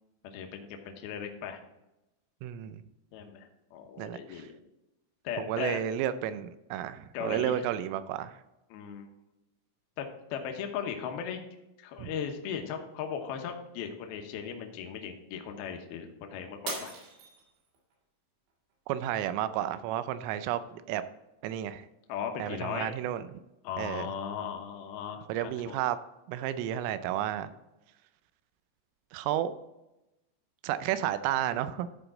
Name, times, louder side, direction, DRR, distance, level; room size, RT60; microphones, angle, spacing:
voice 1, 0.2-1.6 3.1-4.6 5.2-5.8 7.1-7.7 8.7-9.1 10.0-11.4 11.8-16.9 22.1-22.9 23.6-25.3 25.7-25.8, left 7 dB, 80° left, 4 dB, 2.2 m, -37 dB
voice 2, 2.4-2.8 4.0-4.5 5.4-8.4 12.0-12.1 18.9-21.0 21.4-21.9 22.4-23.3 23.8-24.1 25.3-26.0 26.3-27.5 29.1-29.5 30.6-31.9, right 11 dB, 85° right, 12 dB, 3.2 m, -32 dB
Shatter, 16.7-17.9 18.5-18.9 19.5-19.6, right 4 dB, 65° right, 4.1 m, -40 dB
13.0 x 4.9 x 3.7 m, 0.94 s
omnidirectional pair, 5.8 m